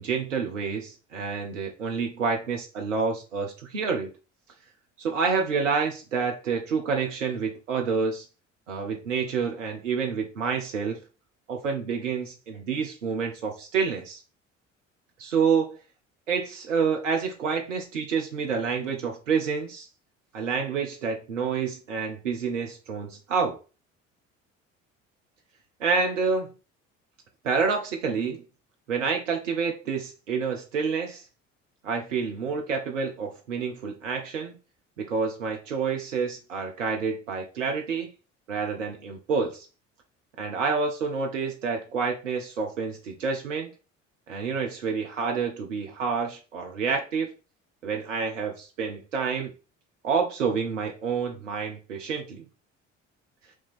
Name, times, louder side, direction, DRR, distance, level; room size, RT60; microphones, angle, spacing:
voice 1, 0.0-4.1 5.0-8.3 8.7-11.0 11.5-14.2 15.2-15.8 16.3-19.9 20.3-23.6 25.8-26.5 27.4-28.4 28.9-31.2 31.8-34.5 35.0-38.1 38.5-39.7 40.4-43.7 44.3-47.3 47.8-49.5 50.0-52.4, right 5 dB, 80° right, 0.7 m, -28 dB
4.4 x 2.8 x 4.1 m
figure-of-eight pair, 55°, 38 cm